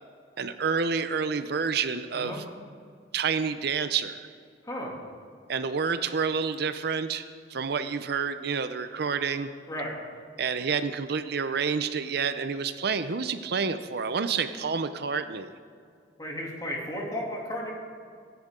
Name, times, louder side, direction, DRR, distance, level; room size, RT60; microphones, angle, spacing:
voice 1, 0.4-2.4 3.1-4.2 5.5-7.2 7.5-9.5 10.4-15.5, right 5 dB, 60° right, 11 dB, 0.6 m, -29 dB
voice 2, 16.2-17.7, equal, 20° left, -2 dB, 2.7 m, -34 dB
23.5 x 10.5 x 3.7 m, 2.3 s
head